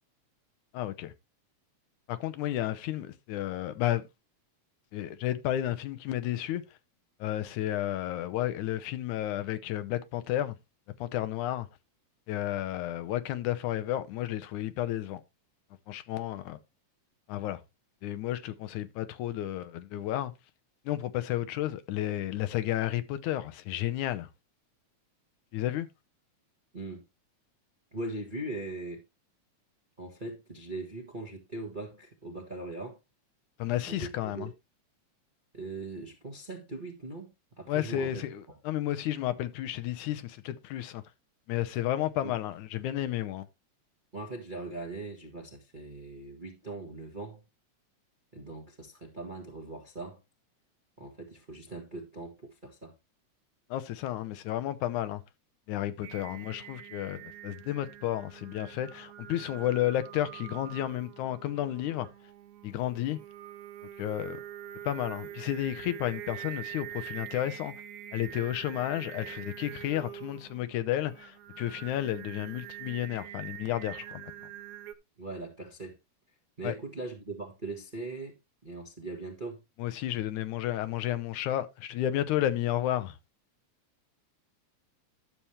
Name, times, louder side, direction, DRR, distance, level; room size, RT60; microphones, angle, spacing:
voice 1, 0.7-1.1 2.1-4.0 4.9-6.6 7.2-10.6 11.0-11.7 12.3-15.2 15.9-16.6 17.3-17.6 18.0-20.3 20.9-24.3 25.5-25.9 33.6-34.5 37.7-41.0 41.5-43.5 53.7-55.2 55.7-62.1 62.6-63.2 64.0-64.4 64.9-67.7 68.1-74.2 76.6-76.7 79.8-83.2, left 13 dB, 85° left, 2.3 m, -32 dB
voice 2, 26.7-27.0 27.9-29.0 30.0-33.0 33.9-34.5 35.5-38.6 42.2-42.3 44.1-47.4 48.3-50.2 51.0-52.9 75.2-76.0 76.6-79.6, right 2 dB, 30° right, 0.9 m, -40 dB
Singing, 56.0-74.9, right 12 dB, 80° right, 2.2 m, -45 dB
12.0 x 7.2 x 3.1 m
omnidirectional pair, 3.3 m